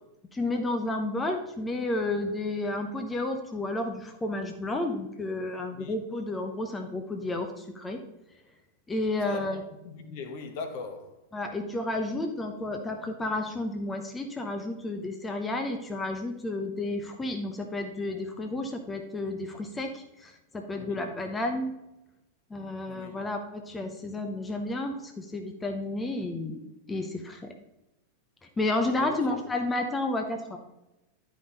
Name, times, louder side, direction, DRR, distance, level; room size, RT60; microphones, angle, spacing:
voice 1, 0.3-8.0 8.9-9.6 11.3-21.7 22.5-26.6 26.9-27.5 28.6-30.6, left 2 dB, 15° left, 0.8 m, -31 dB
voice 2, 9.2-9.6 9.8-11.2 20.7-21.1 22.9-23.2 29.0-29.4, left 4 dB, 50° left, 1.2 m, -40 dB
11.0 x 5.1 x 4.0 m
figure-of-eight pair, 90°, 0 cm